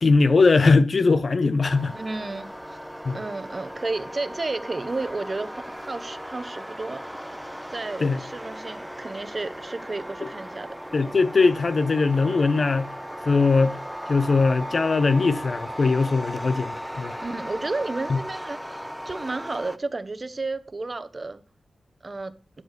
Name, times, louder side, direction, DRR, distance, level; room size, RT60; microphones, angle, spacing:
voice 1, 0.0-2.0 3.0-3.2 8.0-8.2 10.9-12.9 13.3-13.8 14.1-17.2 18.1-18.2, left 4 dB, 50° left, 0.8 m, -20 dB
sound 1, 1.6-19.8, equal, ahead, 0.6 m, -37 dB
voice 2, 1.9-2.8 3.1-5.6 5.8-7.0 7.7-10.7 17.2-21.4 22.0-22.3, right 3 dB, 35° right, 1.1 m, -32 dB
12.0 x 4.9 x 6.7 m
cardioid pair, 70°, 0 cm